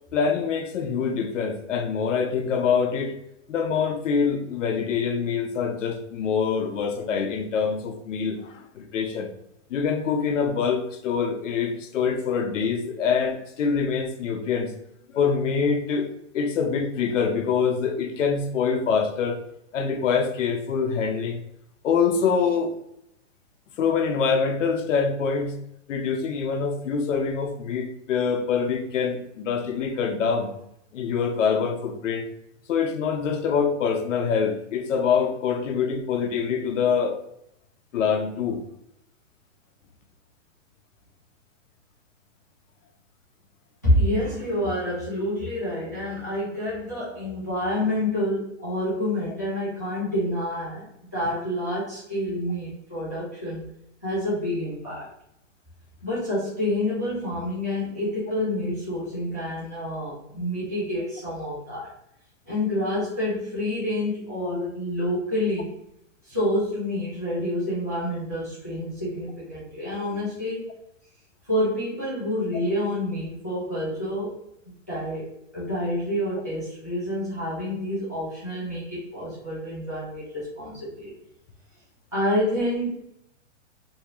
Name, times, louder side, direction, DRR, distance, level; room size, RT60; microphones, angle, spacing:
voice 1, 0.1-3.2 3.5-9.3 9.7-14.7 15.1-16.1 16.3-19.4 19.7-21.4 21.8-22.7 23.8-25.6 25.9-30.5 30.9-32.3 32.7-37.2 37.9-38.6, left 6 dB, 80° left, 5 dB, 0.7 m, -25 dB
voice 2, 43.8-50.9 51.1-53.6 54.0-55.1 56.0-61.9 62.4-65.7 66.2-70.6 71.5-74.4 74.7-81.1 82.1-82.9, left 1 dB, 15° left, -11 dB, 0.4 m, -28 dB
2.8 x 2.4 x 2.8 m, 0.76 s
hypercardioid pair, 180°, 37 cm